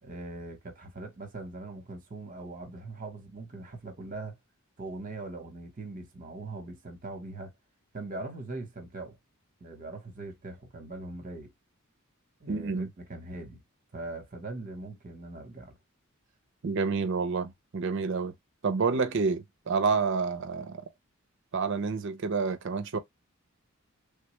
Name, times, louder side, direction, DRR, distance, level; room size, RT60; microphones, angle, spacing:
voice 1, 0.0-4.4 4.8-7.5 7.9-9.2 9.6-11.5 12.4-13.6 13.9-15.7, right 2 dB, 40° right, 0.9 m, -41 dB
voice 2, 12.5-12.9 16.6-18.3 18.6-20.8 21.5-23.0, right 4 dB, 55° right, 0.5 m, -29 dB
3.4 x 2.2 x 3.0 m
head